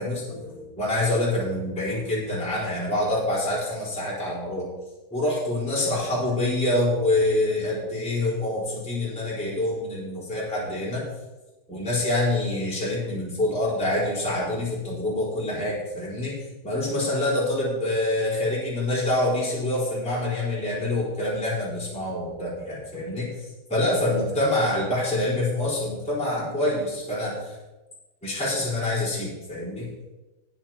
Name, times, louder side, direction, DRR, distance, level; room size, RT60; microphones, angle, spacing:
voice 1, 0.0-4.7 5.1-11.0 11.7-16.3 16.6-23.3 23.7-27.5 28.2-29.9, left 1 dB, ahead, -7 dB, 3.7 m, -26 dB
20.0 x 7.5 x 3.0 m, 1.1 s
omnidirectional pair, 5.3 m